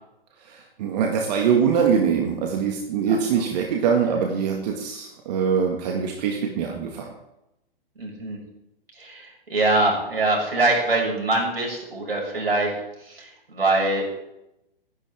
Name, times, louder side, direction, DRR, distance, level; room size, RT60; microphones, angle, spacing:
voice 1, 0.4-7.1, right 6 dB, 45° right, 2 dB, 2.0 m, -23 dB
voice 2, 8.0-8.4 9.0-12.7 13.0-14.0, right 2 dB, 80° right, -1 dB, 6.1 m, -23 dB
20.0 x 11.5 x 3.6 m, 0.87 s
figure-of-eight pair, 120°, 29 cm